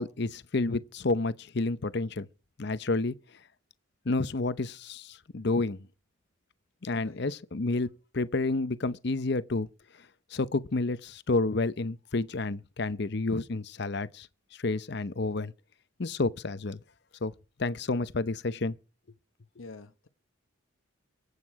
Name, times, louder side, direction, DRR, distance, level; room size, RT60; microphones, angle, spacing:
voice 1, 0.0-2.3 2.6-3.1 4.1-5.8 6.8-7.9 8.1-9.7 10.3-14.3 14.6-15.5 16.0-16.8 17.2-17.3 17.6-18.7, left 3 dB, 55° left, 0.7 m, -30 dB
voice 2, 19.6-20.1, left 3 dB, 85° left, 1.0 m, -46 dB
24.0 x 8.2 x 4.7 m
head